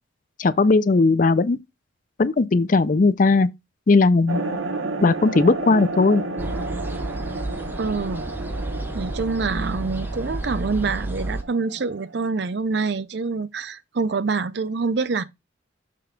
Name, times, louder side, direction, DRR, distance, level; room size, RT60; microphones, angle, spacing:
voice 1, 0.4-1.6 2.2-3.5 3.9-4.4 5.0-6.2, left 3 dB, 45° left, 0.4 m, -18 dB
sound 1, 4.3-12.2, right 2 dB, 90° right, 1.2 m, -32 dB
sound 2, 6.4-11.4, right 1 dB, 10° right, 0.6 m, -31 dB
voice 2, 7.8-8.3 8.9-15.2, right 4 dB, 60° right, 0.5 m, -26 dB
6.8 x 3.4 x 5.1 m
head